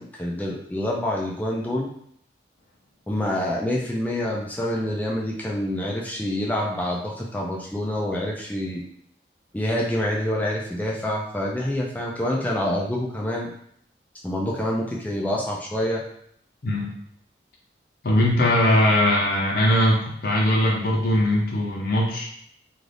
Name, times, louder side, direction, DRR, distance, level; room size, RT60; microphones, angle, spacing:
voice 1, 0.0-1.9 3.1-8.8 9.5-13.5 14.2-16.0, left 1 dB, 10° left, -2 dB, 0.3 m, -27 dB
voice 2, 16.6-16.9 18.0-22.3, left 1 dB, 55° left, -3 dB, 0.5 m, -20 dB
2.5 x 2.4 x 3.3 m, 0.68 s
head